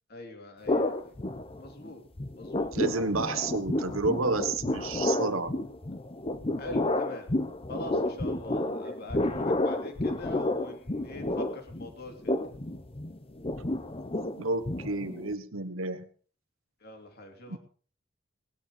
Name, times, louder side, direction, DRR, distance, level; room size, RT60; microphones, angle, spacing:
voice 1, 0.1-1.1 1.6-2.0 2.4-2.7 6.6-7.3 7.7-12.4 16.8-17.6, left 1 dB, 50° left, 4 dB, 3.0 m, -43 dB
sound 1, 0.7-1.9 2.2-15.3, left 1 dB, 30° left, 0.8 m, -31 dB
voice 2, 2.7-5.5 14.3-16.1 17.5-17.6, right 3 dB, 85° right, 11 dB, 1.4 m, -30 dB
18.5 x 10.5 x 5.0 m, 0.42 s
head